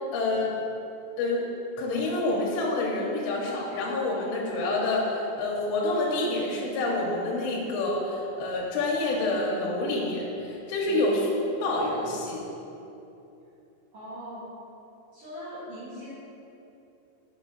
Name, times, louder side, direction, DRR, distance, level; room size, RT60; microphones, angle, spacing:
voice 1, 0.1-0.5 1.2-1.5 1.8-11.3 11.6-12.4, left 2 dB, 85° left, -3 dB, 2.9 m, -27 dB
voice 2, 13.9-14.4 15.1-16.2, equal, 70° right, -11 dB, 1.6 m, -41 dB
6.3 x 5.7 x 3.8 m, 2.9 s
omnidirectional pair, 5.2 m